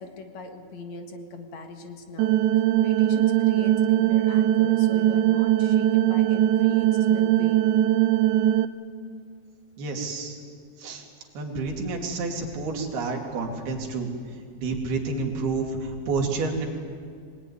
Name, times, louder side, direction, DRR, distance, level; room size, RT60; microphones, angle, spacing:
voice 1, 0.0-2.3 2.8-7.7, left 4 dB, 55° left, 5 dB, 2.4 m, -41 dB
sound 1, 2.2-8.7, right 12 dB, 90° right, 3.0 m, -20 dB
voice 2, 9.8-10.4 10.8-11.1 11.3-14.1 14.5-16.7, right 3 dB, 70° right, 1 dB, 4.7 m, -29 dB
25.5 x 19.0 x 9.9 m, 2.2 s
omnidirectional pair, 4.8 m